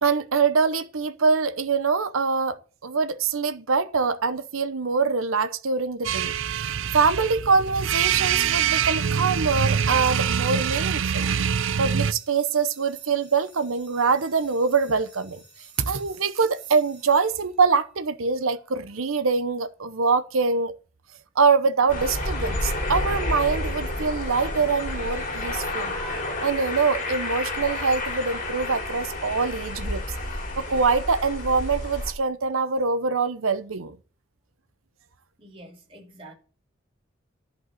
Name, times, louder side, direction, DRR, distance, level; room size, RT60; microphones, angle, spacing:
voice 1, 0.0-6.3 6.9-11.3 11.8-15.4 15.8-20.8 21.4-30.0 30.6-34.0, right 4 dB, 90° right, 0.8 m, -24 dB
sound 1, 6.0-12.1, right 8 dB, 70° right, 0.5 m, -24 dB
sound 2, 9.2-17.9, right 2 dB, 5° right, 6.0 m, -54 dB
sound 3, 21.9-32.1, left 1 dB, 40° left, 2.6 m, -30 dB
voice 2, 35.4-36.3, right 1 dB, 25° right, 3.2 m, -46 dB
11.0 x 5.4 x 7.6 m
head